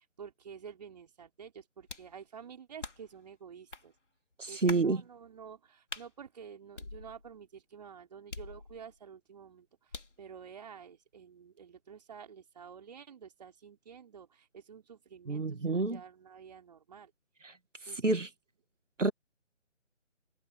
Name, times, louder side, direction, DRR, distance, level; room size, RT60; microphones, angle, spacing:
voice 1, 0.0-3.9 4.5-17.1 17.8-18.2, right 7 dB, 35° right, 3.9 m, -50 dB
sound 1, 1.9-2.2 2.8-3.2 3.7-3.9 4.7-4.9 5.9-6.1 6.8-7.4 8.3-9.0 9.9-10.2, left 3 dB, 70° left, 3.6 m, -44 dB
voice 2, 4.4-5.0 15.3-16.0 17.4-17.6 17.8-18.3 19.0-19.1, right 3 dB, 75° right, 1.9 m, -29 dB
figure-of-eight pair, 155°, 38 cm